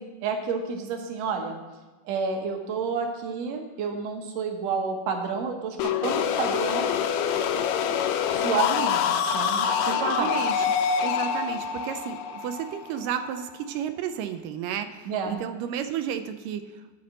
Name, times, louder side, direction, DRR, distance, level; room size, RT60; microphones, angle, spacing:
voice 1, 0.0-1.6 2.1-6.9 8.3-10.3 15.1-15.4, right 5 dB, 60° right, 3 dB, 2.0 m, -30 dB
sound 1, 5.8-13.5, left 7 dB, 80° left, 1.6 m, -26 dB
voice 2, 9.8-10.6 11.0-16.6, right 9 dB, 90° right, 8 dB, 2.3 m, -32 dB
12.5 x 4.3 x 7.5 m, 1.2 s
omnidirectional pair, 3.8 m